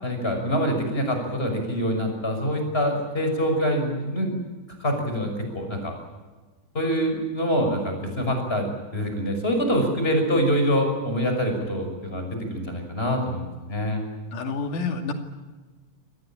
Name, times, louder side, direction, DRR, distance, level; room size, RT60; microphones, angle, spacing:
voice 1, 0.0-4.3 4.8-5.9 6.7-8.7 8.9-14.0, equal, 15° left, 4 dB, 6.1 m, -25 dB
voice 2, 14.3-15.1, left 4 dB, 85° left, 5 dB, 4.0 m, -28 dB
26.0 x 19.0 x 8.8 m, 1.3 s
omnidirectional pair, 3.5 m